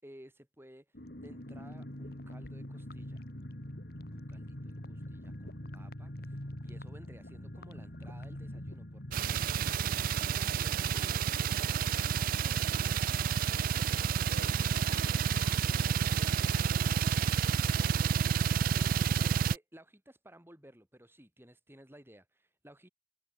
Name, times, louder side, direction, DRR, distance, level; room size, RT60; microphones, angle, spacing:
voice 1, 0.0-3.2 4.1-11.9 12.2-13.3 18.8-22.9, right 1 dB, 10° right, 6.7 m, -56 dB
sound 1, 0.9-13.3 13.6-13.7 13.9-14.2, left 1 dB, 55° left, 3.4 m, -45 dB
sound 2, 9.1-19.6, right 7 dB, 50° right, 0.3 m, -29 dB
voice 2, 14.3-17.1, left 2 dB, 75° left, 7.8 m, -51 dB
head